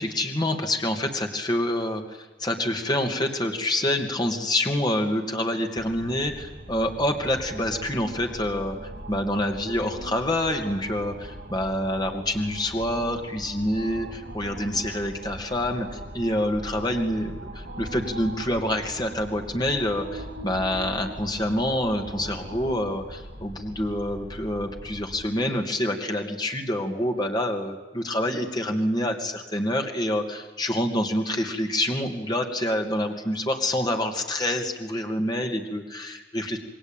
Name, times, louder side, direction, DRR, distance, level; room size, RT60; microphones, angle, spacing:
voice 1, 0.0-36.6, left 1 dB, 25° left, 3 dB, 2.5 m, -27 dB
sound 1, 5.8-25.3, right 1 dB, 65° right, 7.1 m, -40 dB
28.0 x 22.0 x 9.2 m, 1.2 s
head